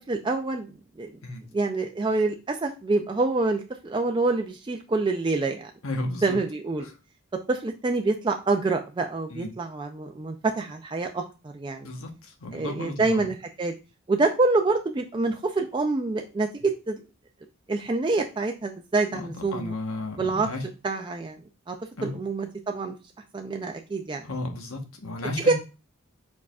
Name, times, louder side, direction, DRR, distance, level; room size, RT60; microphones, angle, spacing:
voice 1, 0.1-0.7 1.0-1.1 1.5-5.7 6.2-6.9 7.5-11.2 11.5-11.9 12.5-13.7 14.1-17.0 17.7-19.7 20.2-20.5 20.8-21.4 21.7-21.8 22.0-22.9 23.3-24.2 25.4-25.5, right 3 dB, 20° right, 4 dB, 0.3 m, -26 dB
voice 2, 5.8-6.4 6.8-7.0 9.3-9.5 11.8-13.2 19.1-20.6 22.0-22.2 24.2-25.5, left 2 dB, 85° left, 5 dB, 1.1 m, -34 dB
4.7 x 4.7 x 2.3 m, 0.30 s
head